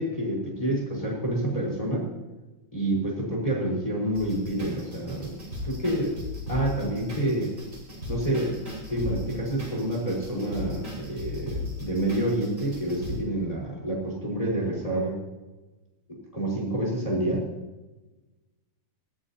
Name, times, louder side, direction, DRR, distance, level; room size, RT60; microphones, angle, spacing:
voice 1, 0.0-2.1 2.7-5.3 5.6-6.2 6.5-7.5 8.1-8.5 8.9-15.2 16.3-17.4, right 1 dB, 10° left, -3 dB, 4.7 m, -28 dB
sound 1, 4.1-13.2, left 2 dB, 20° right, 4.6 m, -37 dB
18.5 x 14.5 x 2.9 m, 1.1 s
omnidirectional pair, 4.3 m